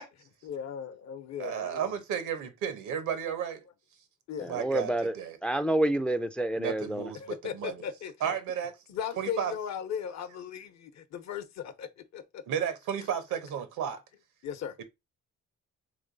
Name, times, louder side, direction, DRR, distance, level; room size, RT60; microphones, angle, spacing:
voice 1, 0.4-1.9 4.3-4.5 7.2-8.4 8.9-12.4 14.4-14.8, left 8 dB, 60° left, 0.8 m, -37 dB
voice 2, 1.4-3.6 4.4-5.4 6.6-7.7 8.2-8.8 9.2-9.5 12.5-14.0 14.8-14.9, right 8 dB, 80° right, 0.9 m, -33 dB
voice 3, 4.4-5.1 5.4-7.1, right 1 dB, 5° left, 0.3 m, -28 dB
3.2 x 3.1 x 3.9 m
cardioid pair, 90°, 30 cm